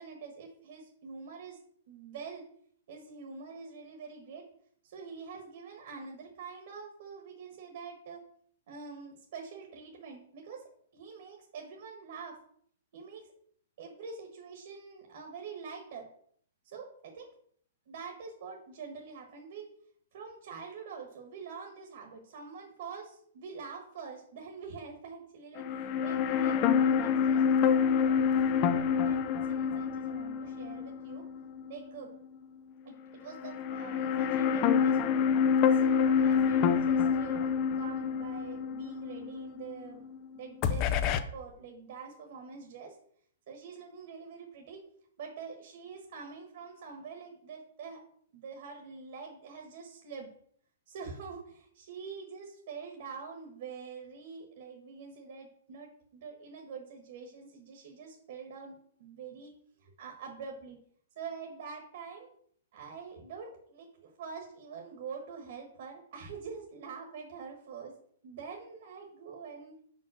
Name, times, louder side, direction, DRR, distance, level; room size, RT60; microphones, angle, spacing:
voice 1, 0.0-1.6 1.9-2.5 2.9-4.5 4.8-8.2 8.7-10.6 10.9-12.4 12.9-13.3 13.8-16.1 16.6-17.3 17.9-19.6 20.1-27.4 27.7-31.3 31.7-32.1 32.8-35.3 35.7-40.1 40.3-43.0 43.5-44.8 45.2-48.0 48.3-50.3 50.9-59.5 59.8-60.8 61.1-62.3 62.7-68.0 68.2-69.7, right 5 dB, 45° right, 2 dB, 1.4 m, -45 dB
sound 1, 25.6-31.8 32.1-32.2 33.3-40.2 40.6-41.2, left 7 dB, 25° left, 0.4 m, -27 dB
5.3 x 5.3 x 6.3 m, 0.63 s
hypercardioid pair, 175°, 0 cm